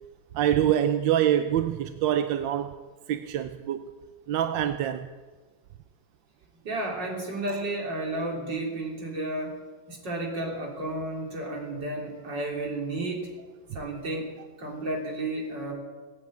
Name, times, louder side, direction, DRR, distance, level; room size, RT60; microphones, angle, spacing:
voice 1, 0.3-2.7 3.1-3.9 4.3-5.1, right 10 dB, 70° right, 9 dB, 1.3 m, -25 dB
voice 2, 6.6-9.6 9.9-13.3 13.7-14.3 14.6-15.7, right 2 dB, 55° right, 0 dB, 4.0 m, -32 dB
18.5 x 8.9 x 8.7 m, 1.4 s
omnidirectional pair, 2.2 m